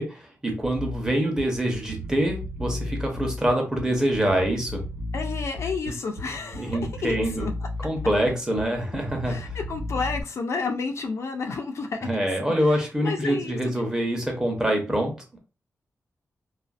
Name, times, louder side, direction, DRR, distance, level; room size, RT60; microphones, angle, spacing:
voice 1, 0.0-4.8 6.5-7.5 7.8-9.5 12.0-15.4, right 1 dB, 15° right, 0.7 m, -25 dB
Bass guitar, 0.6-10.2, left 1 dB, 85° right, 1.2 m, -34 dB
voice 2, 5.1-7.5 9.3-13.8, left 4 dB, 65° left, 0.4 m, -31 dB
2.5 x 2.4 x 2.4 m
wide cardioid pair, 115°, 5 cm